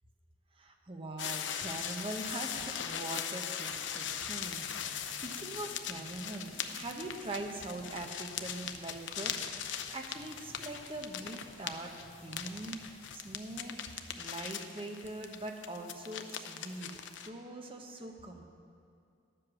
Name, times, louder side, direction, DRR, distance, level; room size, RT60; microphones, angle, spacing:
voice 1, 0.6-9.3 9.9-11.9 12.2-13.8 14.2-16.9 17.2-18.4, right 2 dB, 30° right, 3 dB, 0.9 m, -42 dB
sound 1, 1.2-17.3, left 8 dB, 90° left, 0.6 m, -40 dB
sound 2, 3.4-13.6, left 1 dB, 40° left, 1.5 m, -57 dB
11.5 x 7.8 x 6.3 m, 2.4 s
head